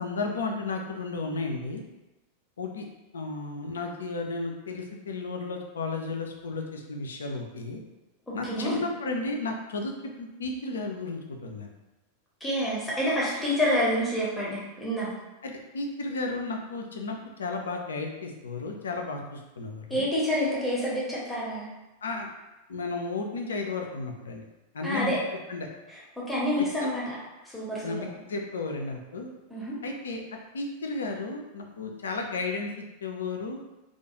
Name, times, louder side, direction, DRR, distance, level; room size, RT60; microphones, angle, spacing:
voice 1, 0.0-1.8 2.6-2.9 3.1-7.8 8.3-11.7 15.4-20.1 22.0-22.3 22.7-24.4 24.7-25.1 25.5-25.7 26.6-26.7 27.8-29.3 29.8-30.2 30.5-33.6, left 3 dB, 70° left, 2 dB, 0.3 m, -33 dB
voice 2, 8.3-8.8 12.4-15.1 19.9-21.7 24.8-25.2 25.9-27.1 27.5-27.9 29.5-29.8, equal, 5° left, -7 dB, 0.7 m, -28 dB
2.4 x 2.2 x 2.8 m, 1.0 s
figure-of-eight pair, 90°, 0 cm